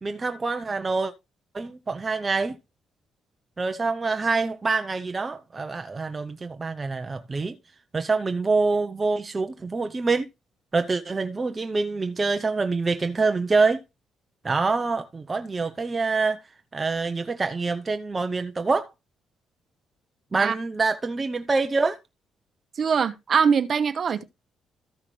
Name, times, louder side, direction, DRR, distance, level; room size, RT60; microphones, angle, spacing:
voice 1, 0.0-1.1 1.5-2.6 3.6-7.5 7.9-10.3 10.7-13.8 14.4-16.4 16.7-18.9 20.3-22.0, right 3 dB, 25° right, 0.7 m, -25 dB
voice 2, 22.8-24.2, right 6 dB, 50° right, 1.0 m, -22 dB
14.0 x 5.8 x 3.2 m
cardioid pair, 90°, 0 cm